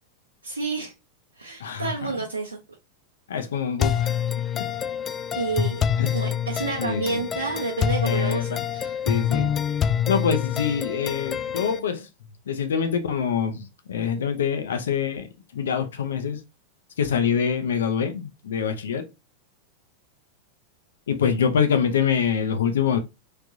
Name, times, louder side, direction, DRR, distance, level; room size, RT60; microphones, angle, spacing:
voice 1, 0.4-0.9 1.4-2.6 5.3-5.8 6.1-9.0, right 4 dB, 80° right, 0.8 m, -29 dB
voice 2, 1.6-2.1 3.3-4.2 4.5-4.7 6.0-6.2 6.8-7.2 8.0-8.6 9.1-9.5 10.1-12.1 12.5-15.3 15.5-16.4 17.0-19.0 21.1-23.0, left 7 dB, 65° left, 0.7 m, -25 dB
sound 1, 3.8-11.8, left 8 dB, 25° left, 0.3 m, -26 dB
3.4 x 3.3 x 2.5 m
figure-of-eight pair, 90°, 0 cm